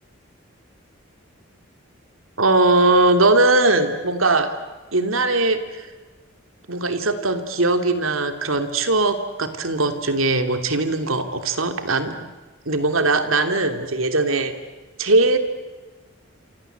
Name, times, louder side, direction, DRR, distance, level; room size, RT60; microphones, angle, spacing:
voice 1, 2.4-4.5 4.9-5.9 6.7-12.3 12.7-14.5 15.0-15.4, right 2 dB, 85° right, 8 dB, 2.9 m, -20 dB
28.5 x 26.0 x 8.1 m, 1.2 s
head